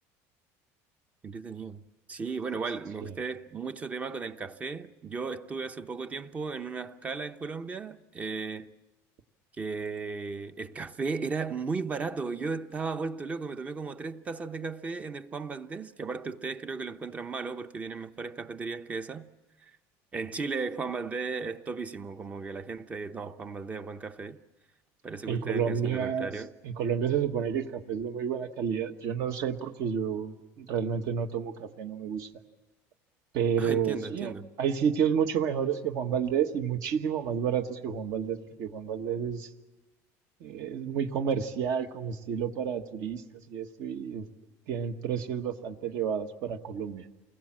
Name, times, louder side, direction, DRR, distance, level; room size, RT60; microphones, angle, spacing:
voice 1, 1.2-1.8 2.1-8.7 9.6-19.3 19.6-19.7 20.1-24.4 25.0-26.5 33.6-34.5, right 4 dB, 20° right, 0.8 m, -35 dB
voice 2, 25.3-32.3 33.3-39.5 40.4-43.2 43.5-44.3 44.7-47.0, right 7 dB, 55° right, 1.4 m, -30 dB
28.5 x 21.0 x 7.5 m
cardioid pair, 155°, 7 cm